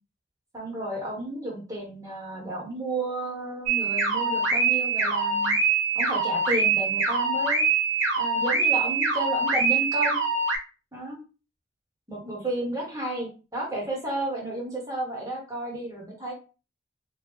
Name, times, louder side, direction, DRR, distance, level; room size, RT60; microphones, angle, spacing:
voice 1, 0.5-5.6 5.9-7.6 8.2-10.2 10.9-11.2 12.1-16.3, right 1 dB, 20° right, -3 dB, 1.2 m, -32 dB
sound 1, 3.7-10.6, right 4 dB, 90° right, 1.2 m, -24 dB
3.0 x 2.3 x 3.5 m, 0.33 s
head